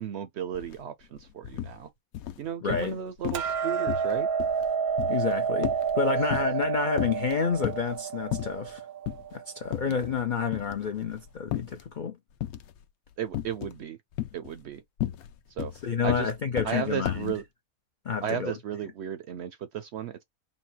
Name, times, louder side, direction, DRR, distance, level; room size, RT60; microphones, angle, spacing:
voice 1, 0.0-1.9 2.4-4.3 6.2-6.4 9.9-10.0 13.2-14.0 14.3-14.8 15.6-15.7 16.0-16.3 16.6-17.4 18.2-20.2, right 9 dB, 65° right, 0.7 m, -34 dB
sound 1, 0.6-0.7 1.0-1.8 2.1-3.0 3.2-3.6 3.9-6.7 7.0-7.9 8.3-8.7 9.1-9.2 9.7-10.2 10.5-11.9 12.4-12.8 13.3-13.8 14.1-17.4, left 13 dB, 85° left, 1.1 m, -34 dB
voice 2, 2.6-3.0 5.1-8.8 9.3-12.2 15.8-17.3 18.0-18.5, left 6 dB, 65° left, 0.5 m, -29 dB
Hammer, 3.3-9.6, right 7 dB, 90° right, 1.2 m, -29 dB
3.9 x 2.2 x 4.0 m
omnidirectional pair, 1.5 m